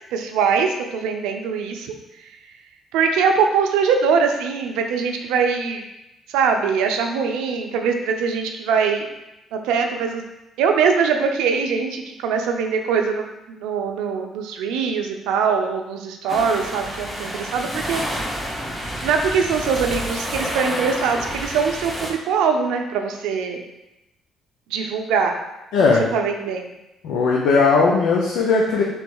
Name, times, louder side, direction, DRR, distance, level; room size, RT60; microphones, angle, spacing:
voice 1, 0.1-1.9 2.9-5.8 6.3-9.1 9.5-10.2 10.6-13.3 13.6-18.4 19.0-23.6 24.7-25.4 26.1-26.7, right 6 dB, 85° right, 4 dB, 0.5 m, -22 dB
sound 1, 16.3-22.1, equal, 5° left, 1.2 m, -29 dB
voice 2, 25.7-26.0 27.0-28.8, left 4 dB, 75° left, -2 dB, 0.6 m, -17 dB
3.2 x 3.1 x 4.7 m, 0.94 s
supercardioid pair, 70°, 0 cm